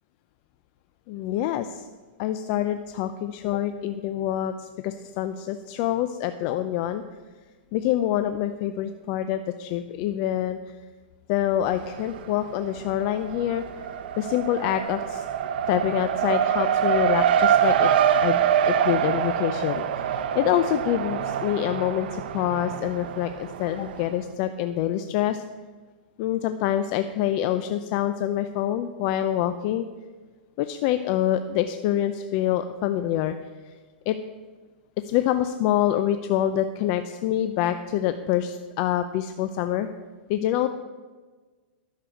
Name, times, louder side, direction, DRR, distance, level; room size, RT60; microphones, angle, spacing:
voice 1, 1.1-1.9 2.2-7.0 7.7-10.7 11.3-13.6 14.2-15.3 15.7-17.9 18.2-18.4 18.7-25.4 26.2-29.9 30.6-33.3 33.7-33.8 34.1-34.2 35.0-39.9 40.3-40.7, left 11 dB, 40° left, 9 dB, 0.6 m, -26 dB
Race car auto racing, 11.6-12.4 12.7-24.1, right 8 dB, 65° right, 0.9 m, -25 dB
11.5 x 6.8 x 7.7 m, 1.4 s
hypercardioid pair, 145°, 6 cm